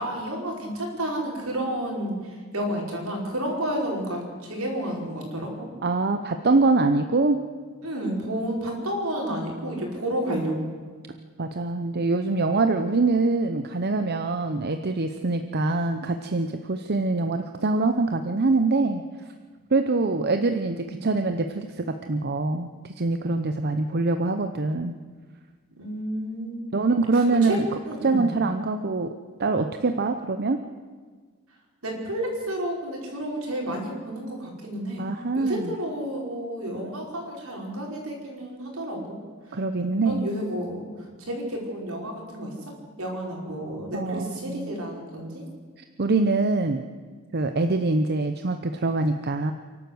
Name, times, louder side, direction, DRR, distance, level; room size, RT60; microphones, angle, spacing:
voice 1, 0.0-5.7 7.8-10.6 20.1-20.2 20.8-21.1 25.7-26.7 27.1-27.6 27.9-28.3 31.8-35.1 35.3-39.2 39.5-39.6 40.0-40.9 41.2-42.7 43.0-45.4, right 1 dB, 75° right, 0 dB, 5.2 m, -31 dB
voice 2, 5.8-7.4 11.4-19.0 19.7-22.7 23.0-25.0 26.7-27.7 28.0-29.1 29.4-30.6 35.0-35.7 39.5-40.3 43.9-44.7 46.0-46.8 47.3-49.5, right 3 dB, 50° right, 7 dB, 0.8 m, -24 dB
27.5 x 12.0 x 8.0 m, 1.5 s
head